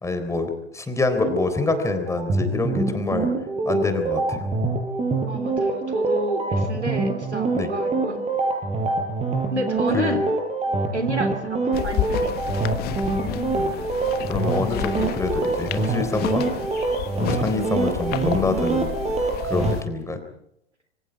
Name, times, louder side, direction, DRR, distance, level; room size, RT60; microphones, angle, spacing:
voice 1, 0.0-3.3 3.7-4.4 7.5-7.7 9.9-10.2 13.0-13.7 14.3-16.4 17.2-18.9 19.4-20.2, left 3 dB, 10° left, 7 dB, 3.7 m, -26 dB
sound 1, 1.2-19.7, right 3 dB, 20° right, 6.1 m, -25 dB
voice 2, 5.2-8.2 9.5-10.2 10.9-12.4, right 1 dB, 90° right, 7 dB, 3.6 m, -30 dB
sound 2, 11.7-19.8, left 13 dB, 30° left, 1.2 m, -31 dB
26.5 x 25.0 x 4.7 m, 0.77 s
figure-of-eight pair, 95°, 33 cm